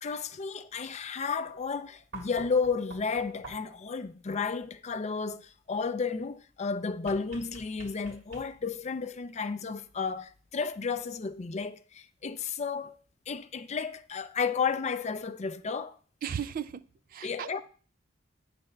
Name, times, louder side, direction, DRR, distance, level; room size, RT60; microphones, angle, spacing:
voice 1, 0.0-13.0 13.3-15.9 17.2-17.6, left 5 dB, 35° left, 0.4 m, -32 dB
sound 1, 2.1-3.9 7.0-8.8 10.3-10.4, right 2 dB, 75° right, 1.9 m, -48 dB
voice 2, 16.2-16.8 17.1-17.6, right 8 dB, 45° right, 0.3 m, -35 dB
8.8 x 3.3 x 6.7 m
head